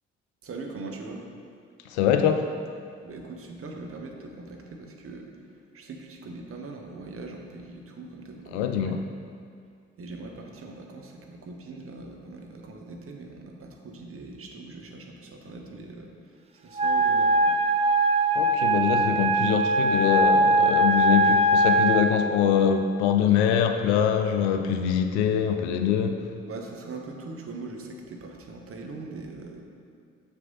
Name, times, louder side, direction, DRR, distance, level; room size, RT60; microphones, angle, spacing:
voice 1, 0.4-1.2 3.0-5.3 5.7-8.9 10.0-16.1 16.6-17.6 26.4-29.6, right 3 dB, 40° right, 1 dB, 1.1 m, -41 dB
voice 2, 1.8-2.5 8.5-9.0 18.3-26.3, left 8 dB, 75° left, 7 dB, 0.5 m, -24 dB
Wind instrument woodwind instrument, 16.7-22.1, right 1 dB, 20° right, 0.5 m, -21 dB
6.8 x 6.2 x 3.9 m, 2.3 s
figure-of-eight pair, 40°, 34 cm